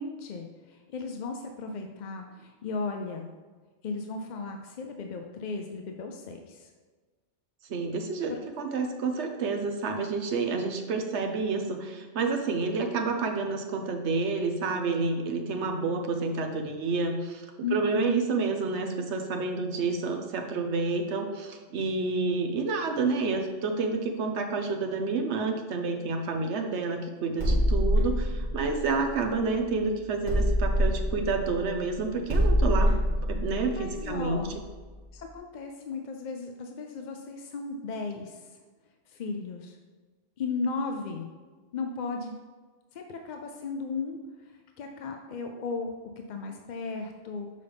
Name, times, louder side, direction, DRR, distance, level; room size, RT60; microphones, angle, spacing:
voice 1, 0.0-3.3 3.8-6.7 8.3-8.4 17.6-18.2 33.8-34.6 35.1-38.5 39.1-39.8 40.4-41.3 41.7-42.3 42.9-44.2 44.8-45.9 46.3-47.5, left 4 dB, 55° left, 4 dB, 0.5 m, -35 dB
voice 2, 7.7-32.9 33.3-34.4, right 4 dB, 65° right, 4 dB, 1.0 m, -29 dB
sound 1, 27.4-29.7 30.3-34.9, equal, 40° right, 2.0 m, -26 dB
6.6 x 5.2 x 3.4 m, 1.4 s
omnidirectional pair, 1.3 m